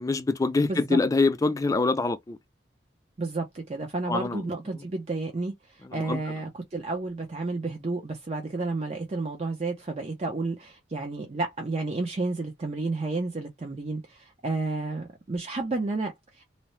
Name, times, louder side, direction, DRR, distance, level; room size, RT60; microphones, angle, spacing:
voice 1, 0.0-2.4 4.1-4.4 5.9-6.2, left 3 dB, 20° left, 0.3 m, -25 dB
voice 2, 0.6-1.0 3.2-16.4, right 3 dB, 35° right, 0.5 m, -31 dB
2.7 x 2.0 x 3.0 m
head